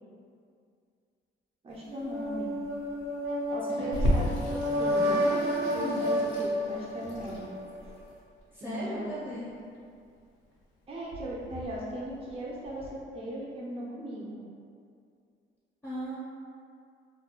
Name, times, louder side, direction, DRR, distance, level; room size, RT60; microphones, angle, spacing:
voice 1, 1.6-2.6 3.5-5.2 5.7-7.5 7.8-7.9 8.6-9.3 10.9-14.4, right 1 dB, 30° right, -5 dB, 0.4 m, -38 dB
sound 1, 1.9-7.7, equal, 85° right, 0.8 m, -30 dB
voice 2, 3.8-4.2 8.5-9.5 15.8-16.2, equal, 10° left, -10 dB, 0.7 m, -37 dB
Water tap faucet / Sink (filling or washing), 3.9-12.9, equal, 80° left, 0.6 m, -35 dB
2.3 x 2.2 x 2.8 m, 2.3 s
cardioid pair, 90°, 20 cm